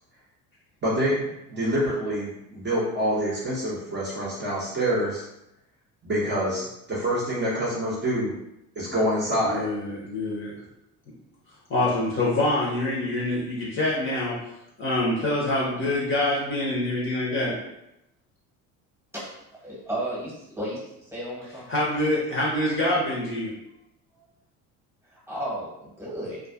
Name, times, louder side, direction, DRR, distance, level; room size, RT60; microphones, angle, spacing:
voice 1, 0.8-5.2 6.0-8.3 8.8-9.7, equal, 25° right, -6 dB, 0.7 m, -26 dB
voice 2, 9.4-10.5 11.7-14.3 14.8-17.5 21.7-23.5, left 1 dB, 25° left, -6 dB, 0.7 m, -25 dB
voice 3, 19.6-20.8 21.1-21.6 25.3-26.4, right 1 dB, 5° right, -6 dB, 1.1 m, -33 dB
2.3 x 2.3 x 2.4 m, 0.84 s
figure-of-eight pair, 60°, 46 cm